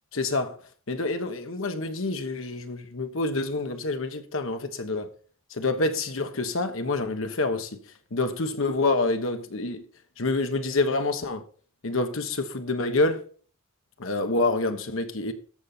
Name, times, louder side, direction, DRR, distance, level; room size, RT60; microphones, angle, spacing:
voice 1, 0.1-0.6 0.9-5.1 5.5-7.8 8.1-9.8 10.2-11.4 11.8-13.2 14.0-15.3, left 2 dB, 70° left, 1.1 m, -27 dB
13.5 x 5.3 x 4.3 m
head